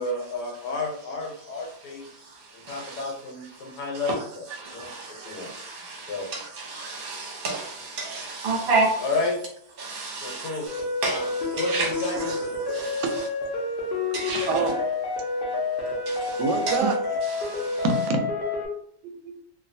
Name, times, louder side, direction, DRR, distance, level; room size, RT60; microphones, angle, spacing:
voice 1, 0.0-2.1 2.5-5.5 6.0-6.3 9.0-9.4 10.1-10.7 11.0-12.6, left 3 dB, 75° left, 1.3 m, -32 dB
voice 2, 2.7-3.0 4.6-9.0 9.8-10.6 11.0-11.9 12.7-13.0 14.1-14.5 16.1-16.4 16.7-16.8 17.4-17.8, right 3 dB, 45° right, 0.8 m, -30 dB
sound 1, 10.7-18.7, left 3 dB, 60° left, 0.5 m, -29 dB
voice 3, 14.5-14.8 16.1-17.0 17.8-18.3 19.0-19.4, right 4 dB, 85° right, 1.2 m, -27 dB
3.0 x 2.2 x 2.6 m
omnidirectional pair, 1.8 m